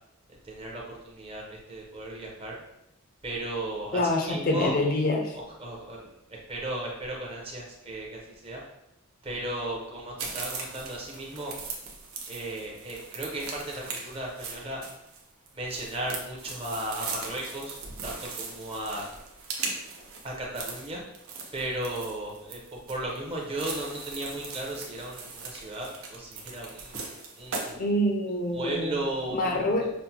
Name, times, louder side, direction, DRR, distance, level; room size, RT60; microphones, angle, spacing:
voice 1, 0.4-2.6 3.2-4.8 5.6-6.0 6.3-8.6 9.2-11.5 12.3-14.8 15.5-19.1 20.2-21.0 21.5-27.0 27.4-27.9 28.5-29.9, right 1 dB, 25° right, -2 dB, 0.7 m, -35 dB
voice 2, 3.9-5.4 27.8-28.9 29.3-29.9, left 1 dB, 40° left, 3 dB, 0.4 m, -26 dB
sound 1, 10.2-27.7, right 4 dB, 85° right, 0.7 m, -39 dB
5.6 x 2.1 x 2.8 m, 0.86 s
head